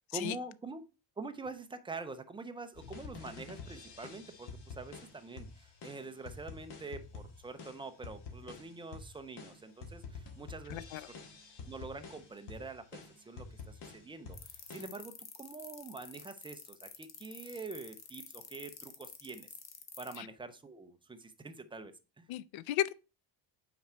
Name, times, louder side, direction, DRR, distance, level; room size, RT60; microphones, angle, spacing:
voice 1, 0.1-0.8 1.2-11.1 11.7-15.1 15.4-19.5 20.0-22.3, right 3 dB, 15° right, 0.3 m, -45 dB
sound 1, 2.7-14.8, left 4 dB, 60° left, 1.6 m, -49 dB
voice 2, 10.7-11.1 20.2-20.3 22.3-23.0, left 13 dB, 75° left, 0.5 m, -35 dB
sound 2, 14.3-20.2, left 7 dB, 35° left, 0.9 m, -48 dB
5.9 x 4.4 x 4.3 m
cardioid pair, 165°, 47 cm